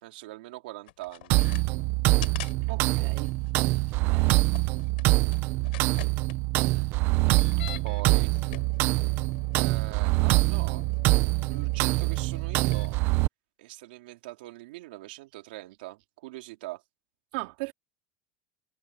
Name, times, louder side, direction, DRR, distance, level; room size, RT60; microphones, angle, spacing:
voice 1, 0.0-1.5 6.7-6.9 7.8-8.5 9.6-10.9 11.4-13.0 13.6-16.8, right 19 dB, 85° right, 3.1 m, -42 dB
sound 1, 0.9-1.6 2.2-2.5 2.8-2.9 3.2-6.3 7.2-8.0 8.3-13.0, left 19 dB, 85° left, 4.7 m, -46 dB
sound 2, 1.3-13.3, right 21 dB, 50° right, 0.7 m, -25 dB
voice 2, 2.7-3.3 4.0-4.5 17.3-17.7, right 24 dB, 70° right, 2.8 m, -37 dB
supercardioid pair, 145°, 5 cm